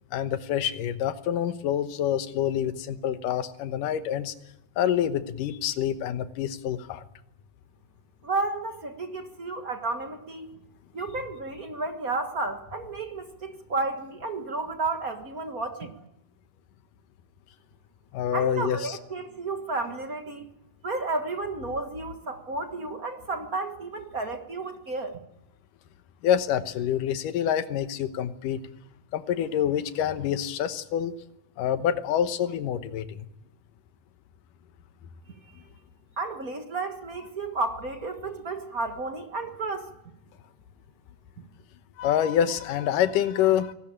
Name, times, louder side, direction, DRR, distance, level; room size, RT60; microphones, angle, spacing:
voice 1, 0.1-4.3 4.8-7.0 18.1-19.0 26.2-28.6 29.1-31.2 31.6-33.3 42.0-43.7, left 10 dB, 80° left, 11 dB, 2.7 m, -27 dB
voice 2, 8.2-10.5 10.9-16.0 18.3-20.4 20.8-25.2 35.5-35.6 36.2-39.9, right 3 dB, 40° right, 6 dB, 1.2 m, -32 dB
25.0 x 19.0 x 8.8 m, 0.88 s
omnidirectional pair, 3.8 m